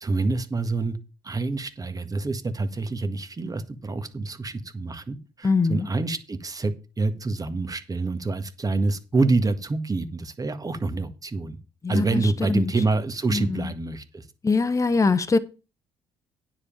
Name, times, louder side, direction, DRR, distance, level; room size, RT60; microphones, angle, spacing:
voice 1, 0.0-1.0 1.2-11.6 11.9-14.2, right 3 dB, 30° right, 1.7 m, -27 dB
voice 2, 5.4-5.9 11.8-12.2 12.5-12.6 13.3-13.5 14.4-15.4, left 4 dB, 25° left, 1.0 m, -22 dB
9.6 x 5.3 x 7.3 m
supercardioid pair, 60°, 12 cm